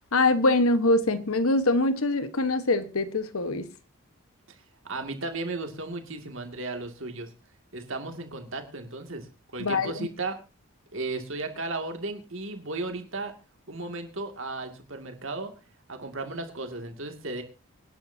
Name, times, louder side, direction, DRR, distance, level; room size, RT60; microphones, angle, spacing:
voice 1, 0.1-3.7 9.6-10.1, left 2 dB, 75° left, 11 dB, 1.2 m, -24 dB
voice 2, 4.5-7.3 7.7-10.4 10.9-13.3 13.7-15.5 15.9-17.4, right 2 dB, 60° right, 5 dB, 2.3 m, -35 dB
25.0 x 10.5 x 2.8 m, 0.31 s
head